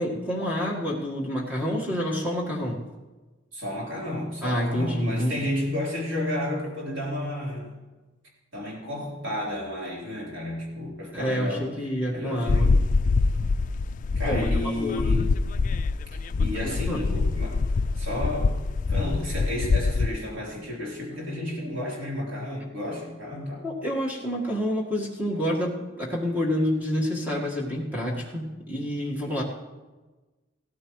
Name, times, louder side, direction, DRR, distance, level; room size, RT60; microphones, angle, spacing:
voice 1, 0.0-2.8 4.4-5.4 11.1-12.8 14.3-14.5 14.8-15.0 16.4-17.0 23.6-29.4, equal, 10° right, -3 dB, 1.6 m, -28 dB
voice 2, 3.5-7.7 8.5-11.7 12.1-12.7 14.2-15.3 16.4-17.6 18.0-18.6 18.9-23.6, left 1 dB, 70° right, -4 dB, 3.8 m, -32 dB
sound 1, 12.5-20.1, left 3 dB, 40° left, 0.3 m, -24 dB
17.0 x 13.5 x 3.2 m, 1.2 s
head